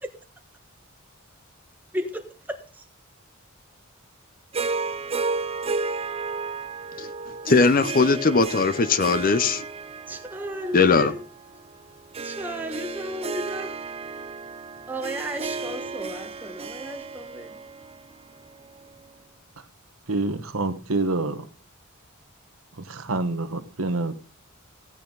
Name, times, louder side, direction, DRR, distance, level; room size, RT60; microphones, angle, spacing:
voice 1, 1.9-2.8 10.1-11.3 12.2-13.7 14.9-17.6, equal, 10° right, 1.3 m, -34 dB
Harp, 4.5-18.9, right 4 dB, 30° right, 0.6 m, -33 dB
voice 2, 7.5-9.6 10.7-11.1, left 4 dB, 40° left, 0.7 m, -19 dB
voice 3, 20.1-21.5 22.8-24.1, right 2 dB, 70° right, 1.2 m, -27 dB
15.5 x 8.9 x 3.9 m
head